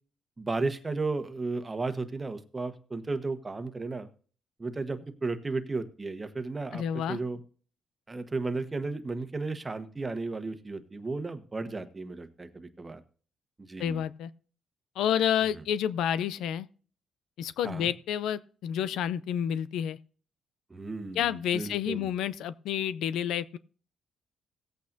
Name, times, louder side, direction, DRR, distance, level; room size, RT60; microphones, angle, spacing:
voice 1, 0.4-4.1 4.6-7.4 8.1-13.0 13.6-14.0 17.6-17.9 20.7-22.1, right 3 dB, 25° right, 1.2 m, -34 dB
voice 2, 6.7-7.2 13.8-14.3 15.0-16.7 17.4-20.0 21.2-23.6, left 9 dB, 85° left, 0.5 m, -29 dB
18.0 x 8.5 x 2.7 m
cardioid pair, 90°, 0 cm